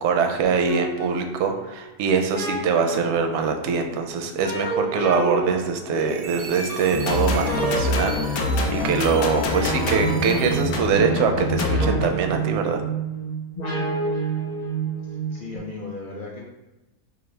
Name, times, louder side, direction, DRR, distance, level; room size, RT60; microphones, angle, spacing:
voice 1, 0.0-12.8, right 5 dB, 65° right, 4 dB, 0.7 m, -23 dB
sound 1, 0.7-15.6, right 4 dB, 35° left, 0.7 m, -30 dB
sound 2, 5.9-11.0, right 2 dB, 90° right, 1.4 m, -36 dB
sound 3, 6.9-12.1, left 3 dB, 90° left, 1.1 m, -25 dB
voice 2, 15.3-16.4, left 3 dB, 75° left, -2 dB, 0.4 m, -36 dB
5.2 x 2.4 x 3.2 m, 1.0 s
omnidirectional pair, 1.5 m